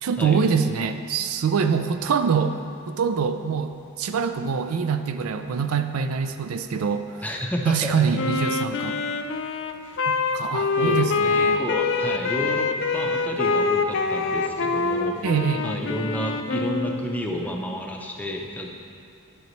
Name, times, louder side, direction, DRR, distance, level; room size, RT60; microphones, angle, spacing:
voice 1, 0.0-2.6 2.9-7.2 7.7-9.0 10.1-11.6 15.2-15.7, right 6 dB, 70° right, 9 dB, 0.4 m, -24 dB
voice 2, 7.2-8.2 10.8-15.2 15.6-18.7, equal, 5° left, 0 dB, 0.6 m, -30 dB
Wind instrument woodwind instrument, 8.2-17.1, left 4 dB, 55° left, 0.4 m, -25 dB
10.0 x 7.9 x 3.1 m, 2.4 s
head